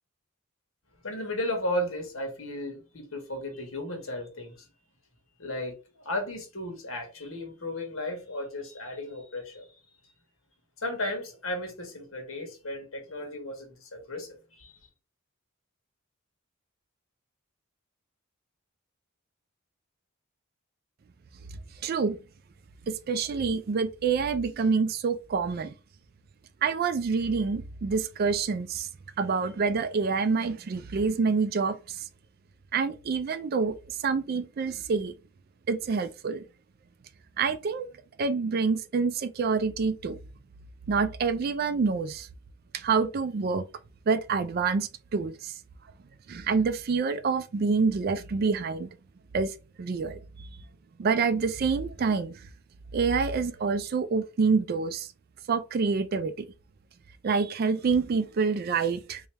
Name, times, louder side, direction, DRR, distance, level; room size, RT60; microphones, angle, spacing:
voice 1, 1.0-4.5 5.4-5.7 6.0-9.6 10.8-14.3 14.6-14.7, left 1 dB, 70° left, 1.5 m, -34 dB
voice 2, 21.8-22.2 22.9-25.7 26.6-28.9 29.2-31.8 32.7-33.8 34.0-35.1 35.7-36.4 37.4-37.9 38.2-40.2 40.9-42.3 42.7-43.6 44.1-45.5 46.3-48.9 49.3-50.2 51.0-52.4 52.9-55.1 55.5-56.5 57.2-59.2, right 5 dB, 45° right, 0.3 m, -27 dB
3.4 x 3.1 x 3.3 m
head